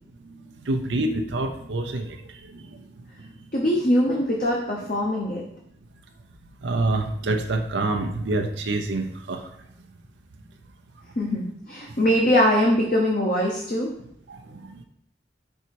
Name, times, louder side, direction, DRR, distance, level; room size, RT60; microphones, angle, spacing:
voice 1, 0.7-2.2 2.5-2.8 6.6-9.5 14.3-14.8, right 2 dB, 90° right, 4 dB, 0.6 m, -27 dB
voice 2, 3.5-5.4 11.2-13.9, equal, 45° left, -2 dB, 0.8 m, -22 dB
5.4 x 4.1 x 4.6 m, 0.72 s
head